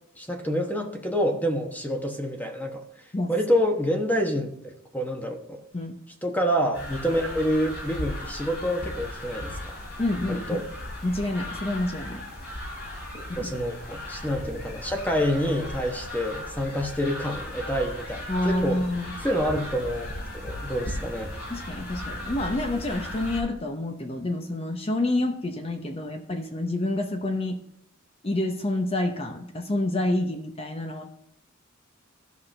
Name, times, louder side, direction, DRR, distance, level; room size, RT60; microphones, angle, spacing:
voice 1, 0.2-2.8 3.3-5.6 6.2-9.8 10.3-10.6 13.2-18.8 19.2-21.3, equal, 10° left, 3 dB, 1.0 m, -27 dB
sound 1, 6.7-23.4, left 1 dB, 55° left, 3.0 m, -37 dB
voice 2, 10.0-10.6 11.0-12.2 13.3-13.5 18.3-19.1 21.5-27.6 28.2-31.2, left 1 dB, 30° left, 5 dB, 0.8 m, -28 dB
15.0 x 5.8 x 3.3 m, 0.72 s
head